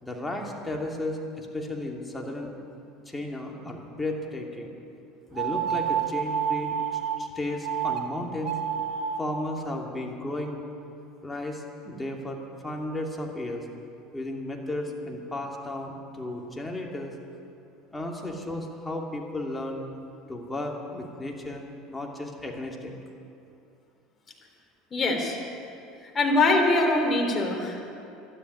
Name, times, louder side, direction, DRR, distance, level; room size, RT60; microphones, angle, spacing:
voice 1, 0.0-2.5 3.1-4.7 5.3-6.8 7.2-8.6 9.2-10.6 11.2-13.6 14.1-17.1 17.9-19.8 20.3-22.9, left 1 dB, 10° left, 0 dB, 2.8 m, -34 dB
sound 1, 5.3-7.2 7.6-8.0 8.4-9.2, right 9 dB, 50° right, 1.7 m, -28 dB
voice 2, 24.9-25.4 26.1-27.9, left 2 dB, 30° left, 1 dB, 3.7 m, -23 dB
12.5 x 11.0 x 9.9 m, 2.7 s
hypercardioid pair, 75°, 0 cm